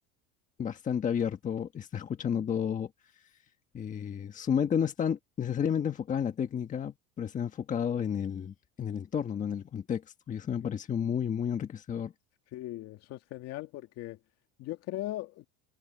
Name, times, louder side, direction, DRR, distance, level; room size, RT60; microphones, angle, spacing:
voice 1, 0.6-2.9 3.7-10.0 10.3-12.1, left 8 dB, 25° left, 1.4 m, -31 dB
voice 2, 12.5-14.2 14.6-15.5, left 16 dB, 50° left, 2.2 m, -39 dB
cardioid pair, 150°, 32 cm